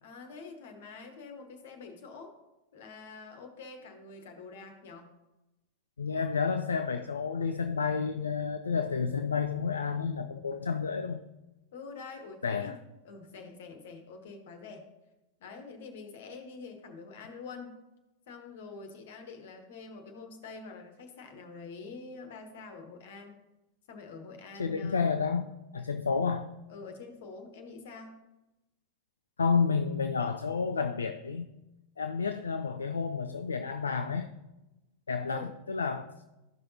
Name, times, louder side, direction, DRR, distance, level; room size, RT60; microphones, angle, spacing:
voice 1, 0.0-2.4 2.7-5.1 11.7-12.8 13.0-14.8 15.4-17.7 18.3-23.4 23.9-25.0 26.7-28.2 35.3-35.6, left 4 dB, 55° left, 6 dB, 1.3 m, -46 dB
voice 2, 6.0-11.2 12.4-12.8 24.6-26.5 29.4-31.5 32.0-34.3 35.1-36.1, left 5 dB, 70° left, 8 dB, 0.4 m, -30 dB
13.5 x 5.7 x 2.8 m, 1.0 s
figure-of-eight pair, 90°, 0 cm